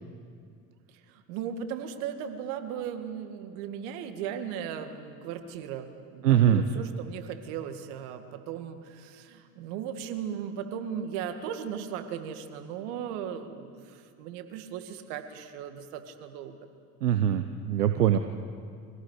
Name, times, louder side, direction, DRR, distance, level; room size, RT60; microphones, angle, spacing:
voice 1, 0.9-16.6, right 8 dB, 70° right, 7 dB, 2.2 m, -37 dB
voice 2, 6.2-6.6 17.0-18.2, right 10 dB, 90° right, 8 dB, 0.9 m, -22 dB
24.5 x 17.5 x 8.3 m, 2.2 s
hypercardioid pair, 65°, 45 cm